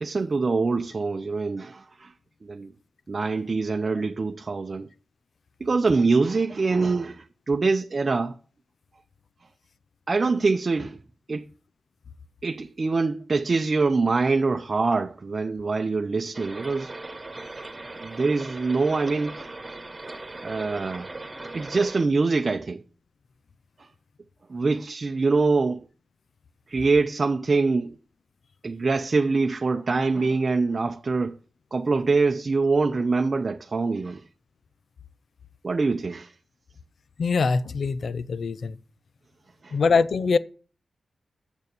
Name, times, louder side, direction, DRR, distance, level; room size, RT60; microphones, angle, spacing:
voice 1, 0.0-2.1 2.4-2.7 3.1-4.9 5.6-8.3 10.1-11.0 11.3-11.4 12.4-16.9 18.0-19.5 20.4-21.1 21.5-22.8 23.8-23.9 24.5-25.8 26.7-28.0 28.6-31.4 31.7-34.2 35.6-36.3 39.6-39.8, right 3 dB, 45° right, 0.7 m, -24 dB
sound 1, 16.3-22.0, right 2 dB, 30° right, 1.6 m, -39 dB
voice 2, 37.2-38.8 39.7-40.4, left 4 dB, 70° left, 0.6 m, -23 dB
7.2 x 6.7 x 6.7 m
cardioid pair, 70°, 0 cm